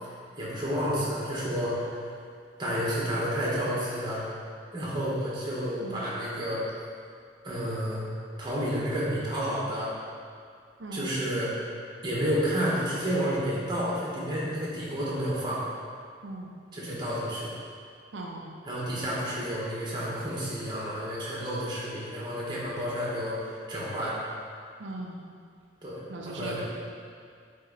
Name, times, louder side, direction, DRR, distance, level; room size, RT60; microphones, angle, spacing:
voice 1, 0.4-2.0 2.6-4.2 4.7-6.6 7.4-8.1 8.4-9.9 10.9-11.5 12.0-15.6 16.7-17.6 18.6-24.2 25.8-26.6, equal, 25° right, -7 dB, 1.5 m, -30 dB
voice 2, 16.2-16.5 18.1-18.5 24.8-25.2 26.1-26.6, right 2 dB, 80° right, -1 dB, 0.6 m, -38 dB
8.0 x 3.7 x 4.1 m, 2.2 s
head